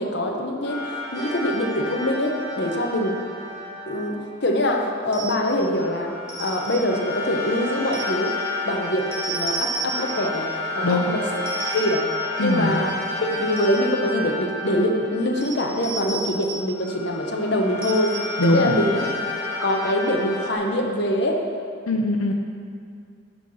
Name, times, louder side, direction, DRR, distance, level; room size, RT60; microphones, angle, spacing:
voice 1, 0.0-3.2 3.9-6.1 6.4-8.3 8.7-10.5 10.7-11.2 11.7-12.1 12.4-12.9 13.3-18.2 18.5-19.1 19.6-21.4, left 1 dB, 55° left, 1 dB, 0.9 m, -24 dB
sound 1, 0.6-4.8 5.7-16.2 16.7-20.5, left 2 dB, 20° left, 2.0 m, -31 dB
sound 2, 5.1-5.5 6.3-6.9 7.9-8.3 9.1-10.3 11.5-12.1 13.2-13.9 15.4-16.7 17.8-18.5, right 3 dB, 45° right, 1.7 m, -32 dB
voice 2, 10.8-11.1 12.4-12.8 18.4-18.8 21.9-22.3, left 1 dB, 90° left, 2 dB, 0.7 m, -21 dB
11.0 x 4.0 x 6.4 m, 2.3 s
head